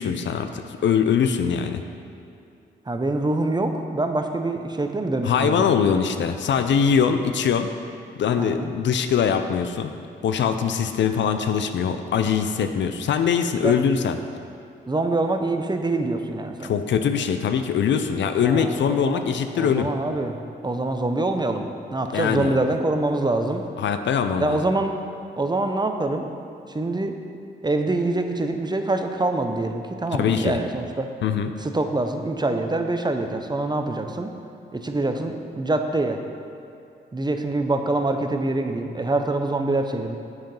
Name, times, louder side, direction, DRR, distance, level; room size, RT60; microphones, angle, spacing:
voice 1, 0.0-1.8 5.2-7.7 8.2-9.9 10.2-14.2 16.6-19.9 22.1-22.6 23.8-24.6 30.1-30.6 31.2-31.5, left 7 dB, 70° left, 8 dB, 0.5 m, -22 dB
voice 2, 2.9-5.7 8.4-8.7 13.6-14.0 14.9-16.7 18.4-19.3 19.6-23.6 24.4-25.0 25.4-26.3 26.7-27.2 27.6-31.1 31.6-34.3 34.7-36.2 37.1-40.2, right 2 dB, 20° right, 5 dB, 0.7 m, -25 dB
7.5 x 4.9 x 5.4 m, 2.6 s
supercardioid pair, 50°, 20 cm